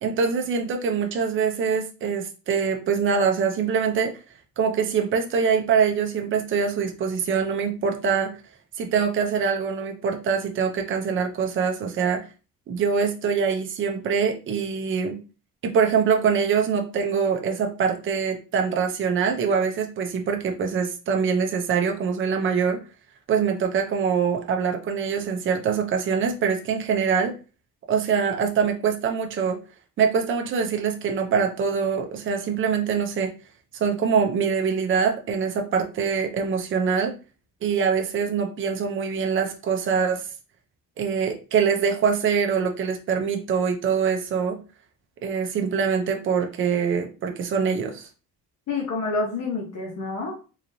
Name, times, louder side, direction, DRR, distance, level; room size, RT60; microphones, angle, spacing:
voice 1, 0.0-4.1 4.6-8.3 8.8-12.2 12.7-15.2 15.6-22.8 23.3-27.3 27.9-29.6 30.0-33.3 33.7-37.1 37.6-40.3 41.0-44.6 45.2-48.1, right 6 dB, 35° right, 3 dB, 0.6 m, -24 dB
voice 2, 48.7-50.4, left 3 dB, 45° left, -2 dB, 1.1 m, -28 dB
3.9 x 3.0 x 2.6 m, 0.34 s
cardioid pair, 160°, 36 cm